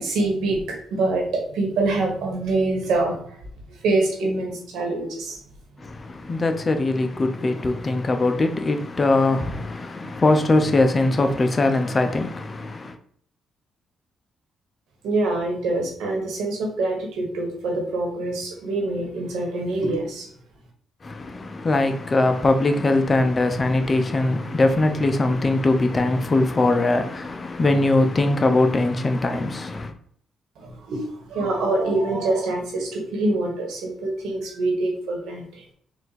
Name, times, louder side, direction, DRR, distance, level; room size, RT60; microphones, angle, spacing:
voice 1, 0.0-3.4 3.7-5.4 10.0-10.1 15.0-20.3 30.6-35.6, right 2 dB, 80° right, 1.4 m, -25 dB
voice 2, 5.8-13.0 21.0-29.9, left 2 dB, 30° left, 0.6 m, -21 dB
4.2 x 2.5 x 4.1 m
cardioid pair, 90°, 0 cm